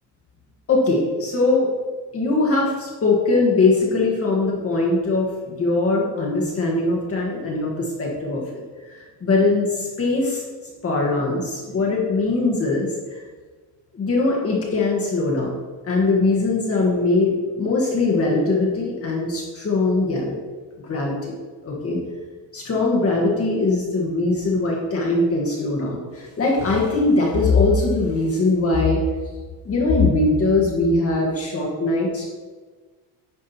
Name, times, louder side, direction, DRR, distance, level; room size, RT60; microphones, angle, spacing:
voice 1, 0.7-1.7 2.1-8.4 8.9-10.4 10.8-12.9 13.9-15.6 15.8-20.4 20.8-21.3 21.6-22.0 22.5-29.0 29.6-32.3, left 3 dB, 35° left, -3 dB, 1.7 m, -21 dB
9.7 x 5.0 x 4.4 m, 1.4 s
cardioid pair, 140°, 41 cm